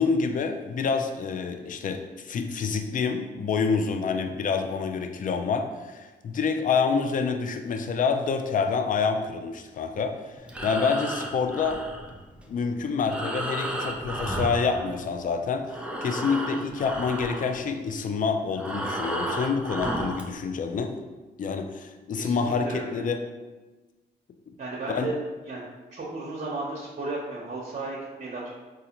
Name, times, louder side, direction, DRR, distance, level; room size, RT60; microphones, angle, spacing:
voice 1, 0.0-11.8 12.5-20.9 21.4-23.2 24.9-25.1, left 5 dB, 45° left, 6 dB, 0.4 m, -27 dB
Breathing, 10.4-15.4 15.6-20.3, right 1 dB, 5° right, 0.5 m, -33 dB
voice 2, 22.2-23.0 24.6-25.2 25.5-25.6 25.9-28.5, right 2 dB, 45° right, -5 dB, 0.8 m, -34 dB
4.0 x 2.5 x 2.8 m, 1.2 s
cardioid pair, 65°, 19 cm